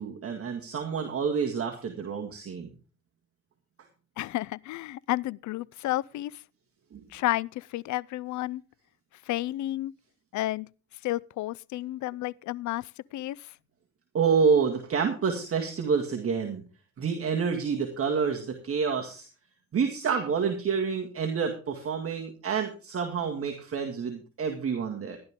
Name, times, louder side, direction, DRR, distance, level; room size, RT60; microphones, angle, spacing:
voice 1, 0.0-2.7 6.9-7.0 14.1-16.6 17.0-19.3 19.7-25.2, right 6 dB, 50° right, 2.0 m, -28 dB
voice 2, 4.2-6.4 7.1-8.6 9.3-9.9 10.3-10.7 11.0-13.5, left 16 dB, 70° left, 0.5 m, -31 dB
13.5 x 11.5 x 3.6 m
cardioid pair, 90°, 30 cm